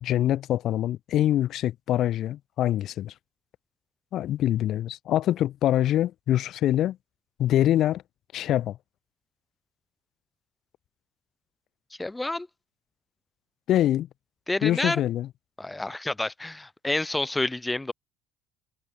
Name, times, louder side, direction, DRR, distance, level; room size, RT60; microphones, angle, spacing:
voice 1, 0.0-3.1 4.1-7.0 7.4-8.0 8.3-8.8 13.7-14.1 14.6-15.3, left 12 dB, 60° left, 0.9 m, -24 dB
voice 2, 12.0-12.5 14.5-15.0 15.6-17.9, left 2 dB, 10° left, 0.3 m, -29 dB
hypercardioid pair, 70°, 0 cm